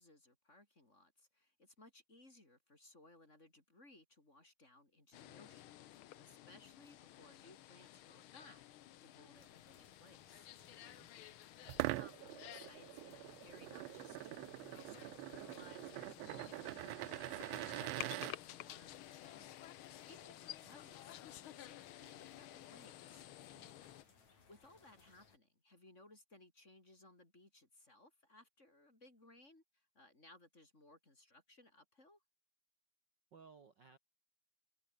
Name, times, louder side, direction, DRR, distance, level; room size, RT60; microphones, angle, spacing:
voice 1, 0.0-8.6 9.0-10.5 11.5-16.7 17.0-23.3 24.5-32.2, left 2 dB, 20° left, 4.5 m, -63 dB
sound 1, 5.1-24.0, left 13 dB, 90° left, 1.1 m, -54 dB
sound 2, 9.3-25.4, left 5 dB, 65° left, 5.5 m, -68 dB
voice 2, 10.7-11.1 23.5-23.8 33.3-34.0, right 5 dB, 40° right, 2.1 m, -62 dB
sound 3, 11.7-18.3, right 20 dB, 90° right, 1.4 m, -44 dB
omnidirectional pair, 3.5 m